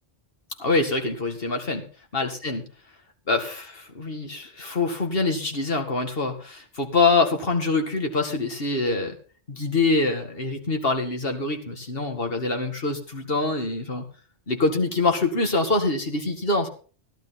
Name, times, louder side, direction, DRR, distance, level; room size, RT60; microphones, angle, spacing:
voice 1, 0.6-1.8 2.1-2.6 3.3-3.7 4.0-9.2 9.5-14.0 14.5-16.7, left 3 dB, 55° left, 5 dB, 2.2 m, -25 dB
15.0 x 11.5 x 4.1 m, 0.38 s
omnidirectional pair, 1.1 m